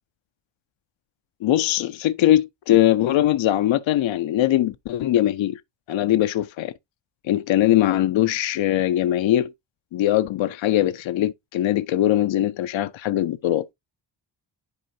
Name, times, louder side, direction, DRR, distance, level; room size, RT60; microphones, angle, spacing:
voice 1, 1.4-5.6 5.9-6.7 7.2-9.5 9.9-13.7, left 13 dB, 80° left, 0.6 m, -21 dB
11.0 x 4.5 x 2.7 m
cardioid pair, 75°, 45 cm